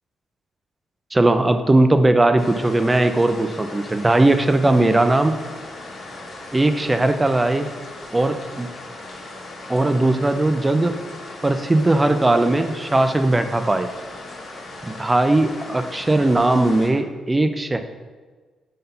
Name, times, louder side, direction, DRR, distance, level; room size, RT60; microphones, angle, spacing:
voice 1, 1.1-5.3 6.5-7.7 8.1-8.7 9.7-11.0 11.4-13.9 14.8-17.8, right 2 dB, 20° right, 9 dB, 0.6 m, -18 dB
sound 1, 2.4-16.9, left 2 dB, 55° left, 1.7 m, -38 dB
5.5 x 3.8 x 5.6 m, 1.4 s
supercardioid pair, 55°, 0 cm